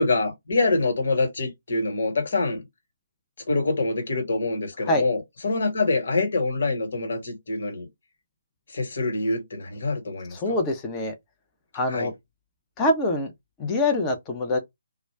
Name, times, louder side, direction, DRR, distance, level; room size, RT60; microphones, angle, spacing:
voice 1, 0.0-2.6 3.5-7.9 8.7-10.6 11.9-12.1, left 3 dB, 55° left, 1.4 m, -25 dB
voice 2, 10.4-11.1 11.7-12.1 12.8-13.3 13.6-14.6, left 2 dB, 20° left, 0.8 m, -24 dB
2.3 x 2.2 x 3.3 m
figure-of-eight pair, 140°, 0 cm